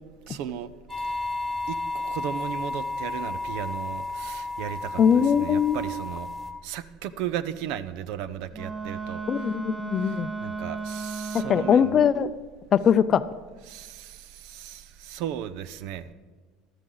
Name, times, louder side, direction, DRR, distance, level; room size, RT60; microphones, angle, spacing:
voice 1, 0.3-0.7 1.0-1.2 1.7-6.3 6.6-9.5 10.0-10.2 10.4-12.0 13.7-16.1, right 10 dB, 70° right, 15 dB, 0.7 m, -35 dB
sound 1, 0.9-6.5, left 2 dB, 10° left, 1.3 m, -32 dB
voice 2, 5.0-5.8 9.3-10.3 11.5-12.3 12.7-13.2, left 8 dB, 35° left, 14 dB, 0.5 m, -21 dB
Wind instrument woodwind instrument, 8.5-12.2, right 4 dB, 20° right, 0.7 m, -34 dB
13.5 x 13.0 x 3.9 m, 1.4 s
supercardioid pair, 125°, 0 cm